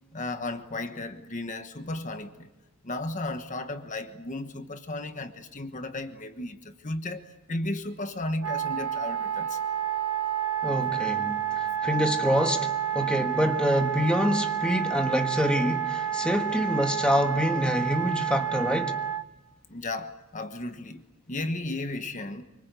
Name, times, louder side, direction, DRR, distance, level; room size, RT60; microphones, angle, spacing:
voice 1, 0.1-2.5 2.8-9.6 19.7-22.4, left 2 dB, 35° left, 1.3 m, -34 dB
Wind instrument woodwind instrument, 8.4-19.2, right 9 dB, 75° right, 2.0 m, -29 dB
voice 2, 10.6-18.9, equal, 5° left, 1.4 m, -26 dB
25.5 x 24.0 x 8.2 m
head